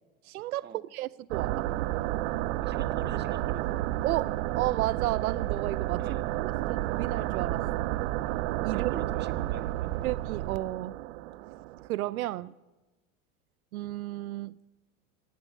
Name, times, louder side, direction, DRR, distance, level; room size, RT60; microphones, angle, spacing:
voice 1, 0.2-1.7 4.0-6.2 6.4-7.9 8.6-9.0 10.0-11.0 11.9-12.5 13.7-14.6, right 15 dB, 85° right, 0.6 m, -33 dB
sound 1, 1.3-11.9, right 15 dB, 65° right, 0.9 m, -31 dB
voice 2, 2.6-3.8 6.0-6.2 8.7-9.9, right 7 dB, 25° right, 1.8 m, -43 dB
17.5 x 16.5 x 9.0 m
hypercardioid pair, 105°, 42 cm